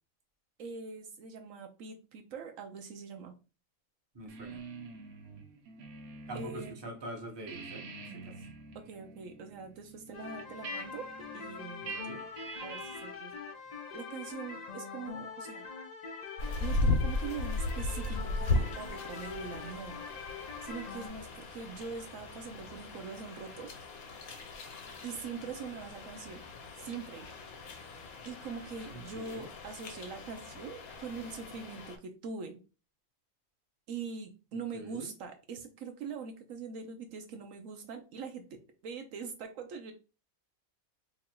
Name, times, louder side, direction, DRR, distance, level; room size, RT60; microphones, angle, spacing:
voice 1, 0.6-3.4 6.3-6.8 8.7-11.9 12.6-13.4 13.9-15.7 16.6-20.1 20.6-23.8 25.0-26.4 26.8-27.3 28.2-32.6 33.9-39.9, right 5 dB, 70° right, 6 dB, 0.9 m, -43 dB
voice 2, 4.1-4.6 6.3-7.8 8.2-8.3 11.8-12.2 28.9-29.5 34.7-35.1, right 1 dB, 25° right, 1 dB, 0.7 m, -44 dB
sound 1, 4.3-6.8 7.1-13.2, right 3 dB, 90° right, 1.2 m, -46 dB
sound 2, 10.1-21.1, left 5 dB, 50° left, 0.5 m, -44 dB
sound 3, 16.4-32.0, left 2 dB, 90° left, 1.3 m, -37 dB
3.0 x 2.4 x 4.3 m, 0.32 s
omnidirectional pair, 1.5 m